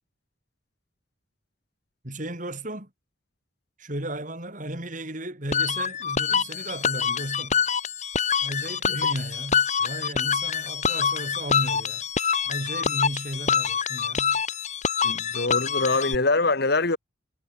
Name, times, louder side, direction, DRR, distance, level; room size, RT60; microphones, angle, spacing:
voice 1, 2.0-2.9 3.8-7.6 8.4-12.0 12.4-14.4, right 1 dB, 40° right, 4.7 m, -34 dB
sound 1, 5.5-16.1, left 6 dB, 35° left, 1.4 m, -26 dB
voice 2, 15.0-17.0, left 3 dB, 55° left, 1.6 m, -24 dB
head